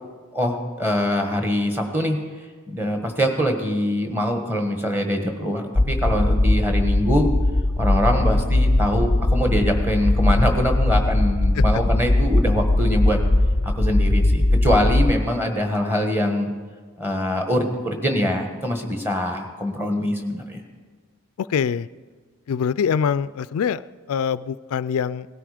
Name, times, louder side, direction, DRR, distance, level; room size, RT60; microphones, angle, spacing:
voice 1, 0.3-2.2 2.7-7.3 7.8-13.2 13.6-16.5 17.0-20.6, equal, 10° right, 3 dB, 1.4 m, -23 dB
sound 1, 5.8-15.1, left 1 dB, 25° left, 0.6 m, -19 dB
voice 2, 21.4-21.9 22.5-23.8 24.1-25.3, left 7 dB, 85° left, 17 dB, 0.3 m, -24 dB
18.0 x 12.5 x 5.0 m, 1.5 s
head